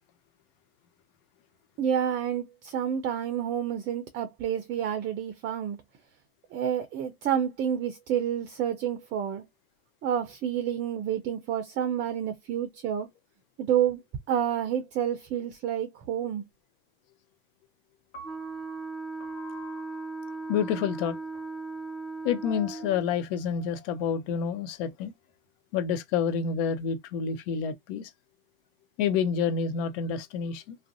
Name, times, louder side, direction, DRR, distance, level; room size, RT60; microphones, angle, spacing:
voice 1, 1.8-5.8 6.5-9.4 10.0-13.1 13.6-14.0 14.3-16.4, right 9 dB, 35° right, 0.5 m, -29 dB
Piano, 18.1-24.3, left 3 dB, 75° left, 1.1 m, -50 dB
Wind instrument woodwind instrument, 18.2-23.1, right 3 dB, ahead, 0.7 m, -37 dB
voice 2, 20.5-21.2 22.2-25.1 25.7-28.1 29.0-30.8, left 7 dB, 55° left, 0.8 m, -28 dB
2.5 x 2.0 x 2.5 m
hypercardioid pair, 100°, 34 cm